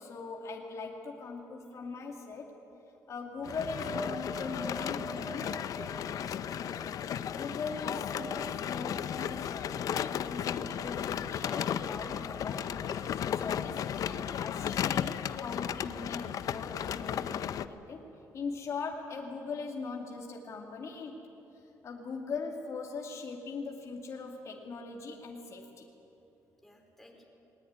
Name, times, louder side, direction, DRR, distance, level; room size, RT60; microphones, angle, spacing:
voice 1, 0.0-2.6 3.1-5.6 7.3-21.2 21.8-25.9, left 4 dB, 50° left, 0 dB, 2.5 m, -40 dB
sound 1, 3.3-10.8 11.1-15.0 15.4-15.6 18.9-19.0, right 2 dB, 15° right, 0.7 m, -47 dB
sound 2, 3.4-17.7, left 9 dB, 65° left, 0.7 m, -35 dB
voice 2, 6.0-7.5 26.6-27.2, left 1 dB, 5° left, 1 dB, 4.4 m, -57 dB
21.0 x 20.0 x 9.6 m, 3.0 s
cardioid pair, 125°, 7 cm